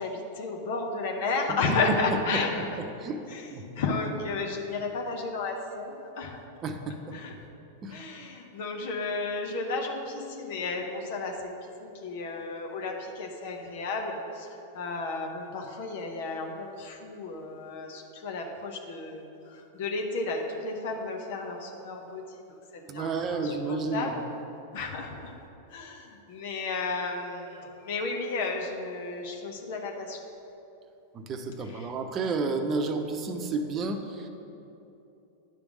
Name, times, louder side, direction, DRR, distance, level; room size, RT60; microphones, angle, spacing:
voice 1, 0.0-2.5 3.3-3.5 3.8-6.4 7.1-7.3 7.9-14.5 14.7-22.4 22.7-24.2 24.7-25.3 25.7-30.2 31.7-31.9, left 3 dB, 65° left, 2 dB, 0.9 m, -33 dB
voice 2, 1.7-2.6 3.0-3.2 3.5-3.6 6.6-7.2 7.8-8.0 22.9-24.2 31.1-34.3, right 3 dB, 35° right, 6 dB, 0.8 m, -31 dB
10.0 x 3.5 x 6.1 m, 2.9 s
hypercardioid pair, 105°, 0 cm